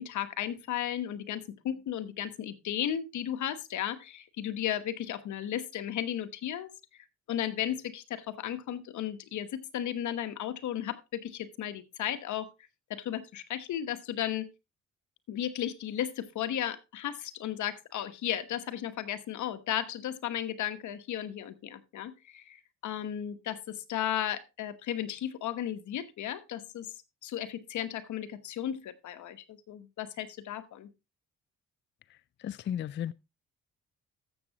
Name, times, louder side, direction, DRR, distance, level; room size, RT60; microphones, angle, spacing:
voice 1, 0.0-6.7 7.3-12.5 12.9-14.5 15.3-26.9 27.2-30.9, left 11 dB, 75° left, 1.2 m, -35 dB
voice 2, 32.4-33.1, left 10 dB, 40° left, 0.4 m, -34 dB
13.0 x 7.3 x 2.9 m
cardioid pair, 90°, 30 cm